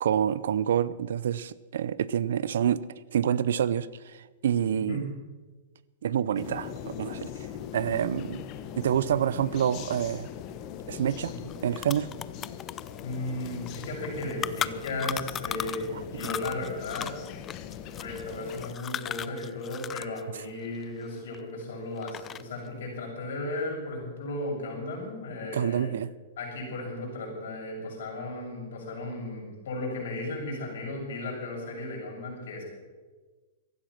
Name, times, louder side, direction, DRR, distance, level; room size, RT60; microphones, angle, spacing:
voice 1, 0.0-2.8 3.1-5.1 6.0-7.3 7.7-8.4 8.8-10.3 10.9-11.3 11.6-12.1 15.9-16.0 25.5-26.1, right 9 dB, 75° right, 0.6 m, -27 dB
sound 1, 6.3-18.7, left 9 dB, 40° left, 1.0 m, -41 dB
sound 2, 11.2-11.3 11.5-15.9 16.2-20.2 20.5-21.6 22.0-22.6, left 9 dB, 20° left, 0.4 m, -36 dB
voice 2, 13.0-17.1 18.0-25.9 26.4-32.6, left 2 dB, 75° left, 6.4 m, -35 dB
15.5 x 11.5 x 6.0 m
hypercardioid pair, 140°, 0 cm